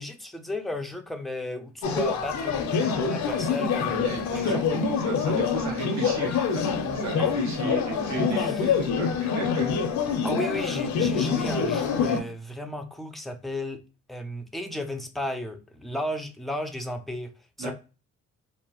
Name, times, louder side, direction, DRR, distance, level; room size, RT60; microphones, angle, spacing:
voice 1, 0.0-4.6 7.2-7.7 8.1-8.9 10.2-13.8 14.1-17.3 17.6-17.7, left 1 dB, ahead, 5 dB, 0.4 m, -34 dB
sound 1, 1.8-12.2, left 6 dB, 65° left, 0.6 m, -26 dB
voice 2, 4.0-9.7 17.6-17.7, right 3 dB, 65° right, 0 dB, 1.0 m, -35 dB
2.7 x 2.0 x 2.8 m, 0.32 s
cardioid pair, 90°, 30 cm